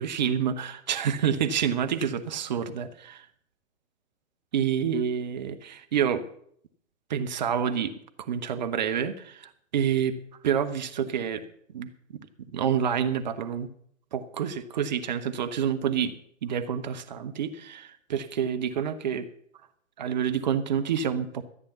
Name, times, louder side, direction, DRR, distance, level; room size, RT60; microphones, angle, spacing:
voice 1, 0.0-3.3 4.5-6.3 7.1-7.9 8.2-10.2 10.4-11.5 11.7-11.9 12.5-13.7 14.1-16.2 16.4-19.3 20.0-21.4, right 8 dB, 35° right, 10 dB, 0.9 m, -28 dB
13.5 x 8.7 x 6.8 m, 0.65 s
figure-of-eight pair, 130°, 41 cm